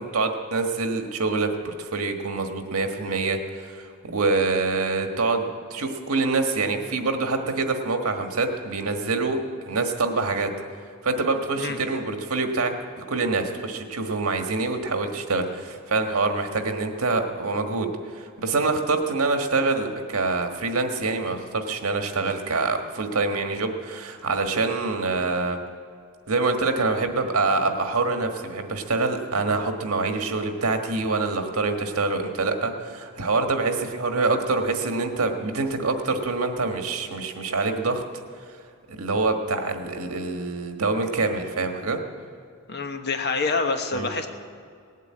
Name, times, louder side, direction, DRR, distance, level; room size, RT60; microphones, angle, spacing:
voice 1, 0.0-9.4 9.7-10.5 11.0-25.6 26.3-38.0 38.9-42.0 43.9-44.1, right 3 dB, 85° right, 5 dB, 1.5 m, -25 dB
voice 2, 42.7-44.3, left 4 dB, 50° left, 6 dB, 1.2 m, -26 dB
18.5 x 8.3 x 8.5 m, 2.3 s
head